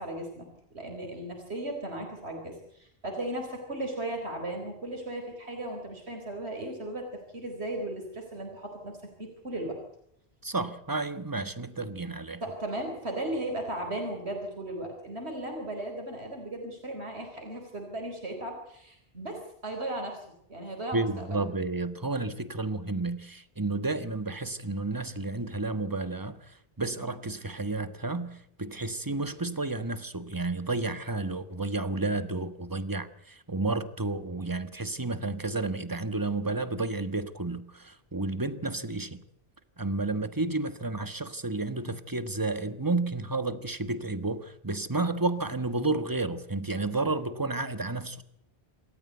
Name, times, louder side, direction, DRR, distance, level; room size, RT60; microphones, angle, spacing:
voice 1, 0.0-9.8 12.4-21.4, right 1 dB, 75° right, 4.5 m, -36 dB
voice 2, 10.4-12.4 20.9-39.2 39.8-48.2, right 3 dB, 20° right, 1.4 m, -31 dB
27.5 x 14.0 x 8.1 m
omnidirectional pair, 1.1 m